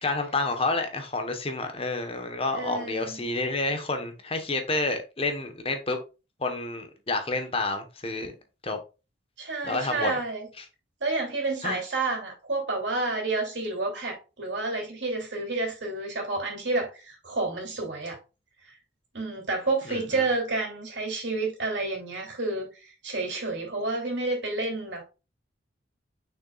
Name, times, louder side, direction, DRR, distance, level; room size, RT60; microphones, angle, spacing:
voice 1, 0.0-6.0 6.4-8.3 8.6-8.8 9.6-10.1 10.6-10.7 11.6-11.8 19.9-20.3, left 3 dB, 30° left, 1.1 m, -29 dB
voice 2, 2.5-3.2 9.4-10.5 11.0-18.2 18.6-18.8 19.1-25.0, right 3 dB, 80° right, 2.9 m, -30 dB
6.6 x 6.1 x 2.4 m
head